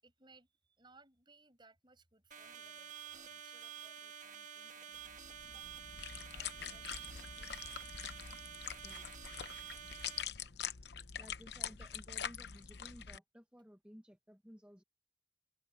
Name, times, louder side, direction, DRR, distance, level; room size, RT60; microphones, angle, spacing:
voice 1, 0.0-7.7 9.8-10.2, right 3 dB, 25° right, 6.8 m, -66 dB
sound 1, 2.3-10.2, right 8 dB, 40° right, 1.5 m, -50 dB
sound 2, 4.9-12.4, right 1 dB, 75° right, 5.2 m, -81 dB
sound 3, 5.0-13.2, left 8 dB, 60° left, 0.8 m, -45 dB
voice 2, 8.8-9.3 11.2-14.8, equal, 5° right, 1.2 m, -57 dB
head